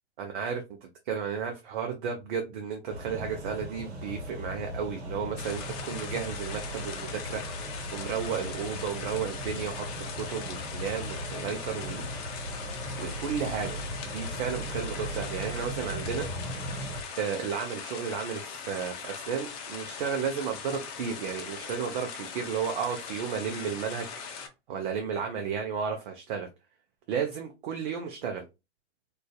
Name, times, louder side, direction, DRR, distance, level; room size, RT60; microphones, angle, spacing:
voice 1, 0.2-9.9 10.1-12.1 13.0-13.8 14.1-24.1 24.7-26.5 27.1-28.4, right 7 dB, 50° right, 0.6 m, -33 dB
sound 1, 2.9-17.0, equal, 70° right, 1.0 m, -38 dB
sound 2, 5.4-24.5, left 6 dB, 35° left, 0.6 m, -40 dB
2.5 x 2.3 x 2.2 m
figure-of-eight pair, 110°, 33 cm